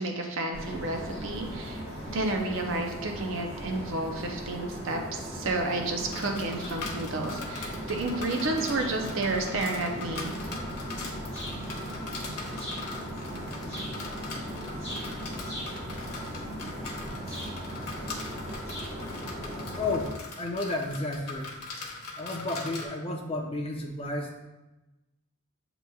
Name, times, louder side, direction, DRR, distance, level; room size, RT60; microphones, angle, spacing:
voice 1, 0.0-1.8 2.1-10.3, right 2 dB, 60° right, 3 dB, 0.5 m, -31 dB
sound 1, 0.5-20.1, equal, 15° right, 1.6 m, -37 dB
sound 2, 6.1-22.9, left 3 dB, 90° left, 1.0 m, -41 dB
voice 2, 19.8-21.5 22.2-24.4, left 2 dB, 25° left, 3 dB, 0.4 m, -32 dB
7.6 x 2.9 x 2.2 m, 1.0 s
head